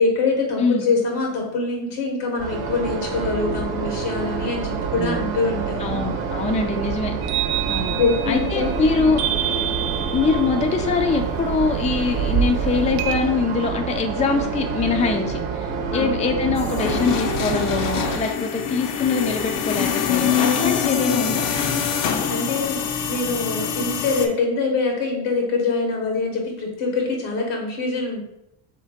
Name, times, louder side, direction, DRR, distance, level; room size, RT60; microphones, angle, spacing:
voice 1, 0.0-6.0 8.0-8.7 8.9-9.2 15.9-16.1 22.3-22.8 23.1-28.2, left 3 dB, 90° left, 1 dB, 1.4 m, -24 dB
sound 1, 2.4-18.2, right 5 dB, 85° right, 0.8 m, -27 dB
voice 2, 5.8-7.1 7.7-8.0 8.3-9.2 10.1-21.4, left 4 dB, 15° left, 4 dB, 0.4 m, -23 dB
sound 2, 7.2-13.2, right 9 dB, 50° right, 0.6 m, -27 dB
sound 3, 16.6-24.3, left 8 dB, 60° left, 0.7 m, -24 dB
3.3 x 2.9 x 4.3 m, 0.83 s
supercardioid pair, 90°, 49 cm